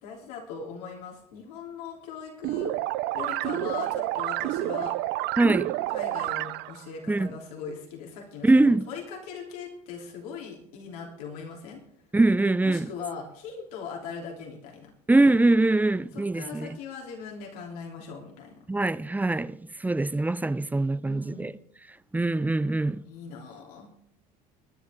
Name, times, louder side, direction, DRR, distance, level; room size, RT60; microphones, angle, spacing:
voice 1, 0.0-2.7 3.1-5.0 5.9-11.8 12.6-14.9 16.1-18.6 21.0-21.6 23.0-23.9, left 6 dB, 80° left, 3.3 m, -40 dB
sound 1, 2.4-6.8, right 16 dB, 65° right, 0.6 m, -29 dB
voice 2, 5.4-5.7 7.1-7.3 8.4-8.9 12.1-12.9 15.1-16.8 18.7-21.5 22.1-23.0, right 2 dB, 10° right, 0.5 m, -23 dB
20.5 x 10.0 x 3.7 m
hypercardioid pair, 80°, 20 cm